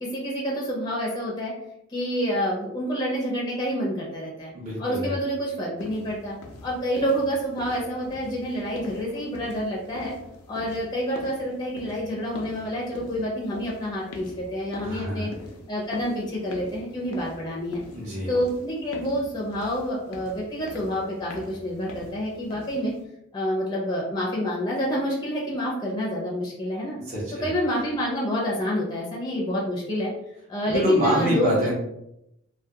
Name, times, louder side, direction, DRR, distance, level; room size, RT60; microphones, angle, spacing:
voice 1, 0.0-1.5 1.9-4.5 4.8-6.3 6.6-10.1 10.5-15.3 15.7-17.8 18.3-22.9 23.3-27.0 27.4-30.1 30.5-31.7, equal, 20° left, -4 dB, 0.5 m, -28 dB
voice 2, 4.5-5.2 14.8-15.3 17.9-18.3 27.1-27.5 30.7-31.7, equal, 30° right, -8 dB, 0.6 m, -25 dB
sound 1, 5.8-23.0, left 2 dB, 85° left, 0.5 m, -43 dB
2.3 x 2.2 x 2.7 m, 0.81 s
head